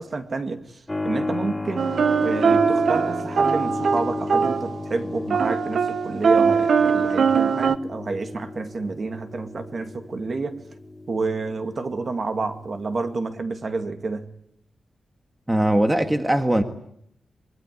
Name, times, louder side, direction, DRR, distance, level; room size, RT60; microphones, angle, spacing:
voice 1, 0.0-10.6 11.1-14.3, right 3 dB, 40° right, 7 dB, 2.2 m, -29 dB
Keyboard (musical), 0.9-13.3, left 2 dB, 15° left, 2.4 m, -33 dB
sound 1, 1.8-4.8 5.3-7.8, right 6 dB, 65° right, 1.0 m, -21 dB
voice 2, 15.5-16.6, right 1 dB, 10° right, 7 dB, 1.6 m, -20 dB
24.0 x 23.0 x 9.7 m, 0.72 s
wide cardioid pair, 150°, 0 cm